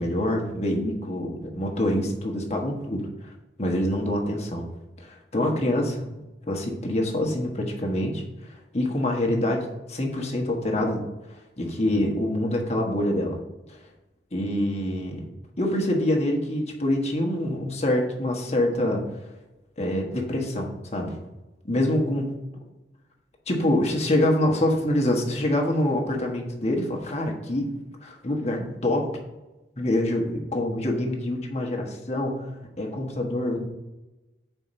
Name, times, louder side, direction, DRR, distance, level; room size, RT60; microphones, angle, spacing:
voice 1, 0.0-3.0 3.6-4.6 5.0-6.1 6.5-8.2 8.7-11.1 11.6-13.4 13.7-13.8 14.3-15.3 15.6-19.0 19.8-21.2 21.6-22.4 23.5-27.7 28.0-29.1 29.8-32.5 32.8-33.6, left 1 dB, 35° left, 0 dB, 1.3 m, -25 dB
5.8 x 4.5 x 5.5 m, 1.0 s
head